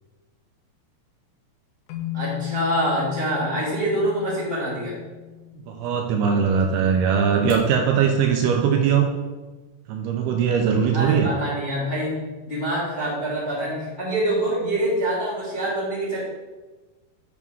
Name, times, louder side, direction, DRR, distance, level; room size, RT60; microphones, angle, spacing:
sound 1, 1.9-6.2, left 16 dB, 85° left, 2.1 m, -35 dB
voice 1, 2.1-4.9 10.9-16.2, right 1 dB, 20° left, -8 dB, 1.2 m, -25 dB
voice 2, 5.7-9.1 9.9-11.3, right 7 dB, 85° right, 3 dB, 2.3 m, -20 dB
sound 2, 7.2-7.8, left 1 dB, 65° left, 1.5 m, -45 dB
8.2 x 3.6 x 6.1 m, 1.2 s
omnidirectional pair, 5.0 m